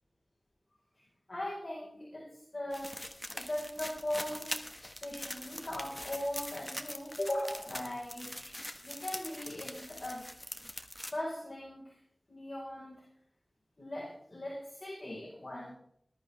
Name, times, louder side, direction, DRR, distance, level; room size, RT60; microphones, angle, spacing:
voice 1, 1.3-3.0 3.3-4.5 4.9-8.5 8.8-10.3 11.1-12.0 12.3-13.0 13.8-15.7, left 1 dB, 35° left, -5 dB, 4.9 m, -39 dB
sound 1, 2.7-11.1, left 1 dB, 10° left, 1.4 m, -43 dB
20.0 x 12.5 x 3.5 m, 0.70 s
wide cardioid pair, 80°, 0 cm